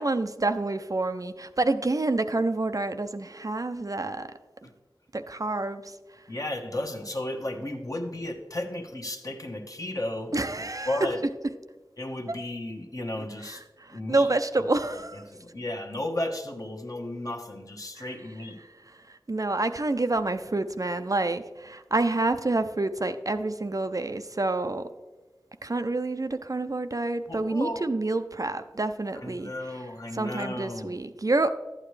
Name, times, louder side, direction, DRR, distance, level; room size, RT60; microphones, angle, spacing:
voice 1, 0.0-4.3 5.1-6.0 10.3-11.0 13.5-15.2 18.0-18.1 19.1-24.9 25.6-29.5 30.1-31.5, right 2 dB, 45° right, 9 dB, 0.4 m, -28 dB
voice 2, 6.3-10.4 10.9-11.2 12.0-13.6 13.9-14.3 15.3-18.6 27.3-27.9 29.1-30.9, left 1 dB, 45° left, 3 dB, 1.0 m, -34 dB
11.5 x 8.8 x 3.2 m, 1.3 s
wide cardioid pair, 50°, 8 cm